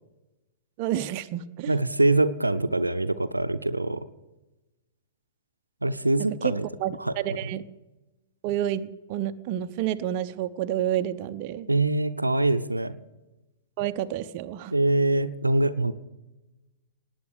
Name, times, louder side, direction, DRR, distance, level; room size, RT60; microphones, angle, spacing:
voice 1, 0.8-1.7 6.4-6.5 6.8-7.6 8.4-11.7 13.8-14.7, right 12 dB, 40° right, 10 dB, 0.7 m, -29 dB
voice 2, 1.7-4.0 5.8-6.7 7.0-7.1 11.7-13.0 14.7-15.9, right 2 dB, 85° right, 11 dB, 0.7 m, -24 dB
18.5 x 9.0 x 6.6 m, 1.1 s
figure-of-eight pair, 105°, 0 cm